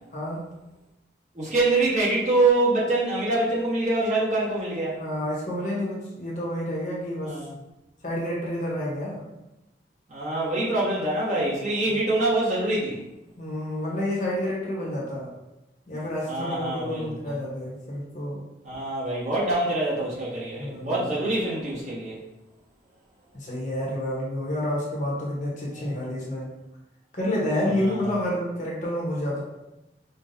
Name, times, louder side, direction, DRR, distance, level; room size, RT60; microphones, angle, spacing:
voice 1, 0.1-0.4 5.0-7.4 8.0-9.2 11.9-12.0 13.4-15.3 15.9-18.4 20.6-21.2 23.3-26.5 27.1-29.4, left 1 dB, 45° left, -5 dB, 1.0 m, -29 dB
voice 2, 1.3-5.0 7.3-7.5 10.1-13.0 16.3-17.4 18.6-22.2 25.7-26.0 27.7-28.0, right 2 dB, 40° right, -8 dB, 1.4 m, -25 dB
5.1 x 2.3 x 2.7 m, 0.96 s
head